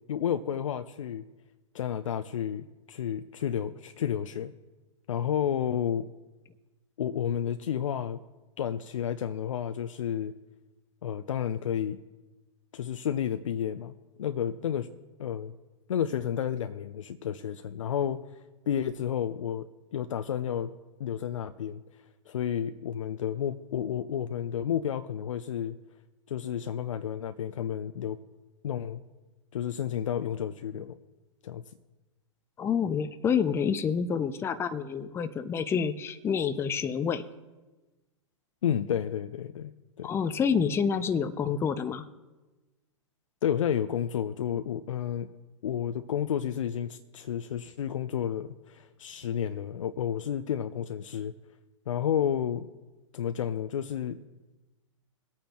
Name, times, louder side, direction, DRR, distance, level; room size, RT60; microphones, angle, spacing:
voice 1, 0.1-1.2 1.7-4.5 5.1-6.1 7.0-8.2 8.6-10.3 11.0-12.0 12.7-14.9 15.2-15.5 15.9-18.2 18.7-19.7 19.9-20.7 21.0-21.8 22.3-25.8 26.3-28.2 28.6-29.0 29.5-31.0 31.4-31.6 38.6-39.7 40.0-40.1 43.4-45.3 45.6-51.3 51.9-52.7 53.1-54.2, left 9 dB, 75° left, 9 dB, 0.5 m, -31 dB
voice 2, 32.6-37.3 40.0-42.1, left 6 dB, 15° left, 11 dB, 0.5 m, -28 dB
21.0 x 8.6 x 3.0 m, 1.2 s
hypercardioid pair, 115°, 17 cm